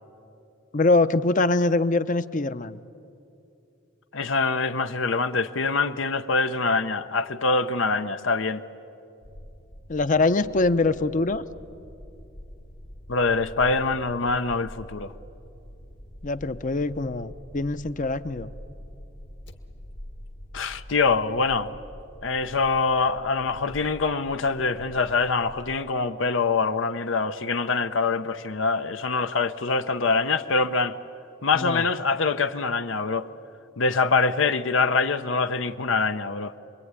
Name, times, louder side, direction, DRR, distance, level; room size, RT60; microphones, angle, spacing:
voice 1, 0.7-2.8 9.9-11.4 16.2-18.5 31.5-31.9, left 3 dB, 40° left, 13 dB, 0.7 m, -23 dB
voice 2, 4.1-8.6 13.1-15.1 20.5-21.8 22.2-30.9 31.4-33.3 33.8-36.5, left 4 dB, 80° left, 9 dB, 0.8 m, -24 dB
sound 1, 9.2-25.8, equal, 65° left, 1.8 m, -45 dB
27.0 x 22.0 x 9.7 m, 2.7 s
head